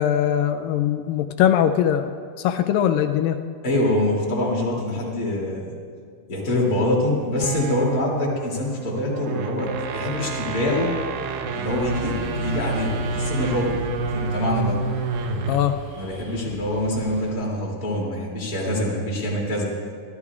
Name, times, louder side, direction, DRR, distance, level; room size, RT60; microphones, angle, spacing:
voice 1, 0.0-3.4 15.5-15.8, left 10 dB, 85° left, 7 dB, 2.3 m, -21 dB
voice 2, 3.6-5.7 6.3-10.9 11.5-13.8 14.1-14.8 16.0-19.7, left 1 dB, 30° left, -4 dB, 3.0 m, -25 dB
sound 1, 7.3-15.7, right 4 dB, 75° right, 2.0 m, -29 dB
sound 2, 11.7-17.3, right 1 dB, 30° right, 1.9 m, -36 dB
24.0 x 14.0 x 2.4 m, 2.1 s
omnidirectional pair, 4.0 m